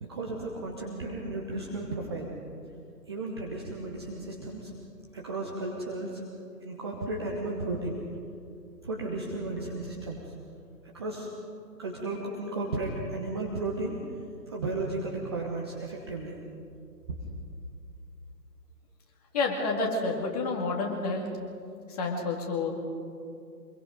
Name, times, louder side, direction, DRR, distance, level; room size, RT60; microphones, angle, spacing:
voice 1, 0.0-2.3 3.1-4.7 5.1-6.2 6.6-8.0 8.8-10.3 10.9-11.3 11.8-14.0 14.5-16.3, right 2 dB, 15° right, -1 dB, 1.0 m, -34 dB
voice 2, 19.3-21.3 21.9-22.7, left 3 dB, 25° left, 0 dB, 2.4 m, -29 dB
25.0 x 22.5 x 5.2 m, 2.5 s
figure-of-eight pair, 150°, 50 cm